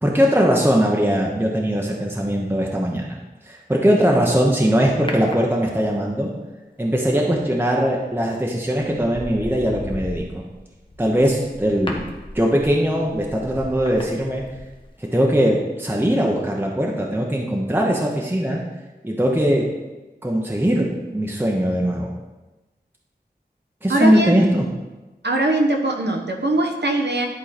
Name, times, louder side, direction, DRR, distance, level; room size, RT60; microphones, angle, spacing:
voice 1, 0.0-3.2 3.5-6.3 6.8-10.4 11.0-12.0 12.3-14.4 15.0-18.6 19.0-19.6 20.2-22.1 23.8-24.6, equal, 10° right, -2 dB, 0.9 m, -20 dB
sound 1, 5.1-6.1 8.0-8.3 8.7-14.9 15.2-15.3, left 1 dB, 30° left, 1.0 m, -36 dB
voice 2, 23.9-24.4 25.2-27.3, right 1 dB, 80° right, 2 dB, 1.0 m, -21 dB
10.5 x 3.8 x 4.2 m, 1.1 s
wide cardioid pair, 50°, 17 cm